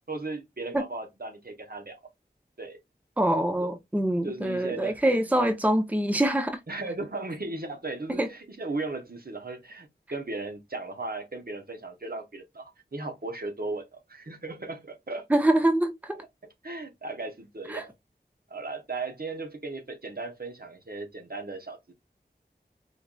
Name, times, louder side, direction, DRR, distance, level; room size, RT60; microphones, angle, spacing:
voice 1, 0.1-2.0 2.6-2.8 3.6-3.7 4.2-5.2 6.7-15.2 16.6-17.9 18.5-21.9, right 3 dB, 60° right, 1.0 m, -36 dB
voice 2, 3.2-6.6 8.2-8.3 15.3-16.2 17.7-17.8, right 1 dB, 10° right, 0.6 m, -24 dB
4.4 x 2.5 x 2.2 m
wide cardioid pair, 45°, 17 cm